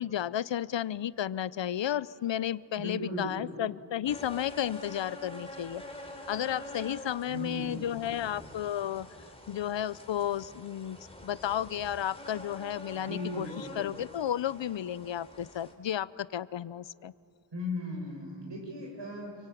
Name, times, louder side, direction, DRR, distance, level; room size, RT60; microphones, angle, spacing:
voice 1, 0.0-5.8 6.3-9.1 9.5-11.0 11.2-17.1, left 10 dB, 70° left, 19 dB, 0.6 m, -33 dB
voice 2, 2.8-3.5 7.3-7.8 13.0-13.8 17.5-19.4, left 1 dB, 65° right, 1 dB, 7.4 m, -37 dB
sound 1, 4.0-15.7, left 1 dB, 10° left, 3.8 m, -47 dB
27.5 x 23.5 x 9.2 m, 2.5 s
cardioid pair, 60°, 46 cm